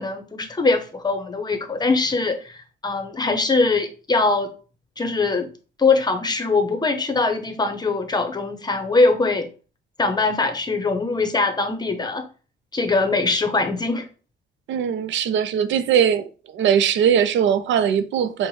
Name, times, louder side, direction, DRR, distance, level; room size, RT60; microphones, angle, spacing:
voice 1, 0.0-4.5 5.0-5.5 5.8-9.5 10.0-12.2 12.7-14.1, left 3 dB, 20° left, 0.7 m, -22 dB
voice 2, 14.7-16.3 16.5-18.5, right 8 dB, 70° right, 0.5 m, -20 dB
4.4 x 2.1 x 3.1 m
cardioid pair, 90°, 20 cm